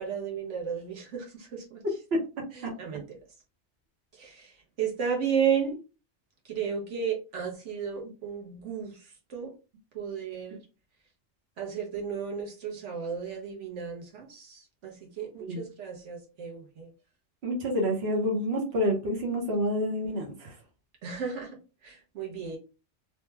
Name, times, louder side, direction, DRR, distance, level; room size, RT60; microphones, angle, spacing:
voice 1, 0.0-1.8 2.5-3.0 4.2-5.7 6.4-9.0 9.3-9.5 9.9-10.6 11.6-16.9 21.0-21.5 21.8-22.6, right 7 dB, 85° right, -1 dB, 1.2 m, -33 dB
voice 2, 17.4-20.5, equal, 60° right, 0 dB, 1.1 m, -28 dB
3.0 x 2.2 x 3.2 m, 0.31 s
omnidirectional pair, 1.2 m